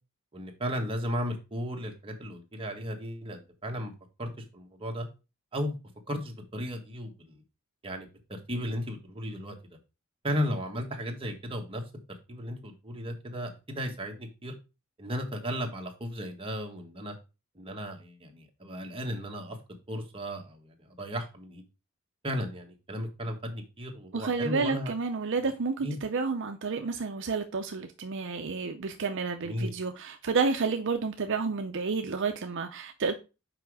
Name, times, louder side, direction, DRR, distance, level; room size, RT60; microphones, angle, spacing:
voice 1, 0.3-3.9 4.2-5.1 5.5-5.8 6.1-7.3 7.8-9.6 10.2-11.8 12.3-14.5 15.0-17.1 17.5-19.6 19.9-21.6 22.2-24.9 25.8-26.0 29.4-29.7, equal, 25° right, 1.4 m, -35 dB
voice 2, 24.1-33.1, right 4 dB, 60° right, 0.6 m, -30 dB
6.0 x 4.9 x 4.7 m
head